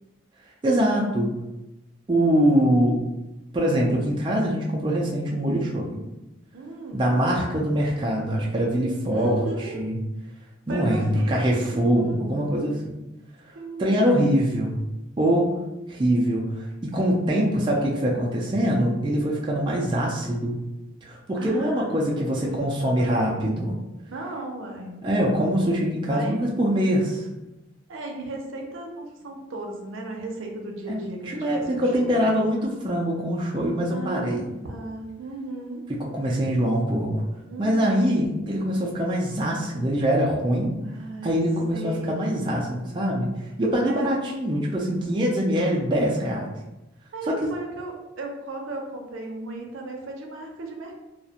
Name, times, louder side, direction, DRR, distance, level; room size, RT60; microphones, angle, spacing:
voice 1, 0.6-1.3 2.1-3.0 3.5-6.0 6.9-10.0 10.7-12.9 13.8-14.8 15.2-15.6 15.9-20.6 21.0-23.7 25.0-27.3 30.9-31.0 31.3-34.5 36.1-37.1 37.6-40.7 41.2-43.3 43.6-46.5 47.3-47.5, equal, 25° right, -3 dB, 0.3 m, -23 dB
voice 2, 6.5-7.1 9.1-9.8 10.7-11.3 11.7-12.3 13.5-14.4 21.3-23.6 24.1-25.0 26.1-26.4 27.9-32.3 33.9-35.8 37.5-38.2 40.8-41.4 41.7-42.1 43.8-44.2 47.1-50.9, right 2 dB, 90° right, 1 dB, 0.5 m, -36 dB
2.3 x 2.1 x 2.7 m, 0.98 s
head